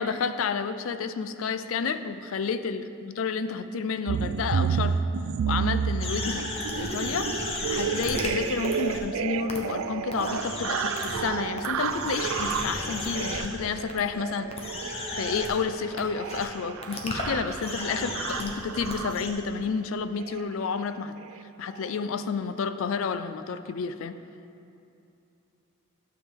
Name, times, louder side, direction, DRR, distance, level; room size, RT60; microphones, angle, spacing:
voice 1, 0.0-5.0 5.5-7.4 7.7-14.5 15.1-21.2 21.6-24.2, left 5 dB, 65° left, 11 dB, 0.4 m, -30 dB
sound 1, 4.1-19.4 20.2-20.5 20.7-20.9 21.2-21.4 21.7-21.9, right 7 dB, 70° right, 0.3 m, -31 dB
sound 2, 6.0-9.0 9.5-9.6 10.1-11.3 11.6-13.5 13.9-14.0 14.5-15.5 16.0-16.1 16.3-16.5 16.8-19.3, left 2 dB, 30° left, 0.9 m, -34 dB
11.5 x 7.0 x 3.6 m, 2.7 s
head